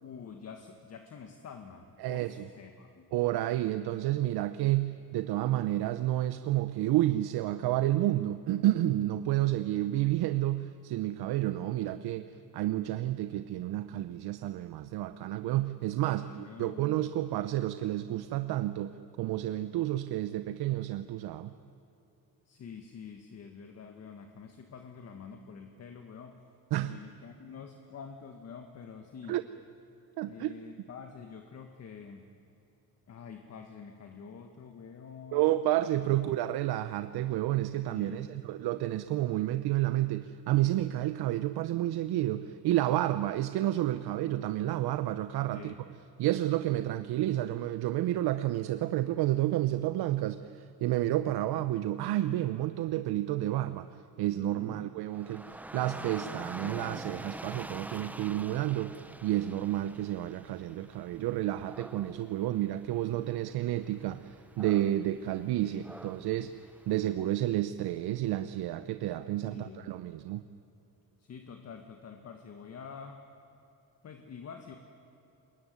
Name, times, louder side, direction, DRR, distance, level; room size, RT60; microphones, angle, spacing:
voice 1, 0.0-3.3 16.2-16.9 22.4-26.4 26.8-29.4 30.2-32.3 33.1-35.4 36.0-36.1 37.9-38.3 45.5-45.8 54.5-54.9 65.6-65.8 69.4-69.9 71.2-73.2 74.0-74.8, left 6 dB, 45° left, 5 dB, 1.7 m, -47 dB
voice 2, 2.0-2.5 3.1-21.5 26.7-26.9 29.3-29.4 30.2-30.5 35.3-45.7 46.2-53.9 54.2-66.6 66.9-70.4, right 14 dB, 90° right, 11 dB, 0.8 m, -30 dB
Dog / Rain, 55.1-67.3, right 1 dB, 5° right, 0.6 m, -46 dB
25.0 x 21.5 x 9.6 m, 2.9 s
cardioid pair, 150°, 37 cm